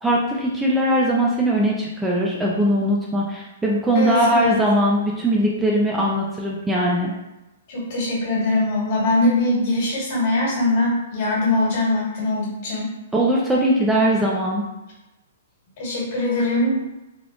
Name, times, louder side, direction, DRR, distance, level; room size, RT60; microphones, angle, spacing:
voice 1, 0.0-7.1 13.1-14.6, equal, 10° right, -4 dB, 0.4 m, -20 dB
voice 2, 3.9-4.6 7.7-12.9 15.8-16.8, left 2 dB, 50° left, -5 dB, 1.5 m, -22 dB
3.4 x 2.4 x 2.4 m, 0.98 s
hypercardioid pair, 130°, 0 cm